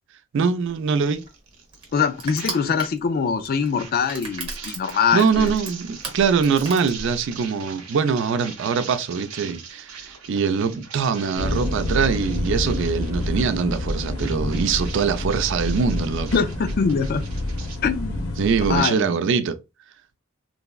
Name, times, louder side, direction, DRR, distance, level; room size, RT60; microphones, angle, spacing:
voice 1, 0.3-1.2 5.1-16.4 18.4-19.6, right 5 dB, 60° right, 0.4 m, -23 dB
Crushing, 0.7-7.5, right 3 dB, 25° right, 1.0 m, -36 dB
sound 1, 1.0-3.0 3.2-17.8, right 6 dB, 85° right, 0.7 m, -42 dB
voice 2, 1.9-5.5 16.3-17.2 17.8-18.4 18.7-19.1, left 6 dB, 45° left, 0.3 m, -23 dB
sound 2, 11.4-18.8, left 1 dB, 75° left, 0.7 m, -28 dB
3.3 x 2.0 x 2.2 m
head